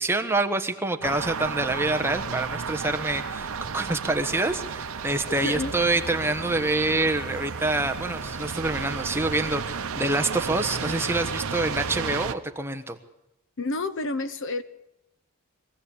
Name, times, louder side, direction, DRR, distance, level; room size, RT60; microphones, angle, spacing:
voice 1, 0.0-13.0, right 2 dB, 10° right, 5 dB, 1.1 m, -26 dB
sound 1, 1.0-12.3, right 5 dB, 75° right, 0.9 m, -33 dB
sound 2, 2.1-11.9, right 2 dB, 15° left, 5.0 m, -49 dB
voice 2, 5.4-5.7 13.6-14.6, left 2 dB, 60° left, 13 dB, 0.9 m, -29 dB
22.5 x 15.5 x 8.6 m, 0.88 s
head